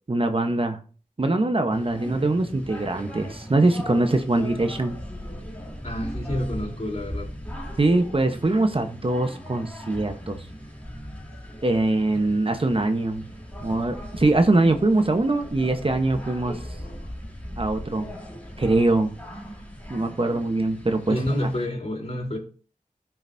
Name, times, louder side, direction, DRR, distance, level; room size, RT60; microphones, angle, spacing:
voice 1, 0.1-0.8 1.2-4.9 7.8-10.5 11.6-13.2 13.6-16.6 17.6-18.1 18.6-19.1 19.9-21.2, right 2 dB, 40° right, 1.0 m, -22 dB
sound 1, 1.7-21.7, equal, 10° left, 3.1 m, -38 dB
voice 2, 5.8-7.3 21.1-22.4, left 1 dB, 45° left, 3.4 m, -28 dB
13.5 x 5.8 x 2.7 m
cardioid pair, 50°, 15 cm